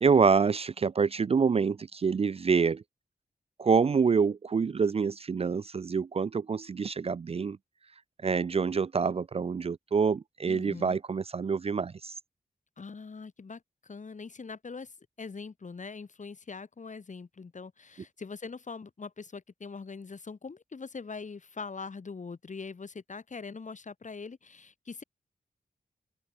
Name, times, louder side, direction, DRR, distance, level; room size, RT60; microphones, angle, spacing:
voice 1, 0.0-2.8 3.6-7.6 8.2-12.1, right 5 dB, 40° right, 0.4 m, -26 dB
voice 2, 10.5-11.0 12.8-25.0, left 4 dB, 55° left, 6.0 m, -42 dB
open air
wide cardioid pair, 80°, 16 cm